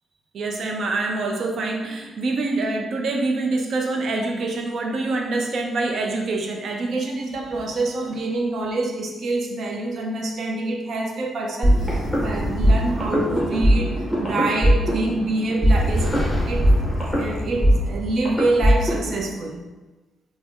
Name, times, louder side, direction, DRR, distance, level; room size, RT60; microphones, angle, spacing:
voice 1, 0.3-14.0 14.2-16.2 16.5-16.7 17.2-19.6, right 2 dB, 60° right, 2 dB, 0.5 m, -26 dB
sound 1, 11.6-19.2, equal, 5° right, 1.0 m, -20 dB
5.1 x 2.0 x 2.4 m, 1.2 s
cardioid pair, 115°, 0 cm